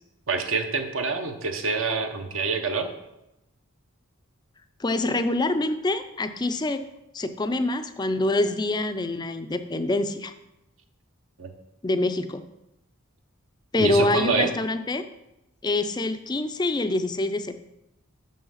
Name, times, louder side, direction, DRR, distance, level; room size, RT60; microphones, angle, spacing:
voice 1, 0.3-2.9 11.4-11.5 13.8-14.5, right 4 dB, 65° right, 6 dB, 0.8 m, -26 dB
voice 2, 4.8-6.8 7.1-10.3 11.8-12.4 13.7-15.0 15.6-17.5, left 2 dB, 20° left, 9 dB, 0.4 m, -25 dB
6.4 x 5.6 x 5.6 m, 0.90 s
head